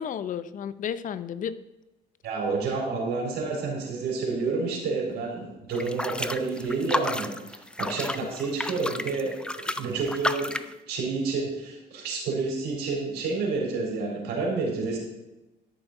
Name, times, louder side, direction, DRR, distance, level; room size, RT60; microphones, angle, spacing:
voice 1, 0.0-1.5, left 8 dB, 50° left, 14 dB, 0.6 m, -32 dB
voice 2, 2.2-10.5 10.9-15.0, right 4 dB, 75° right, -1 dB, 4.4 m, -29 dB
sound 1, 5.7-10.7, left 1 dB, 5° left, 0.5 m, -32 dB
12.5 x 6.9 x 4.4 m, 0.99 s
cardioid pair, 110°, 17 cm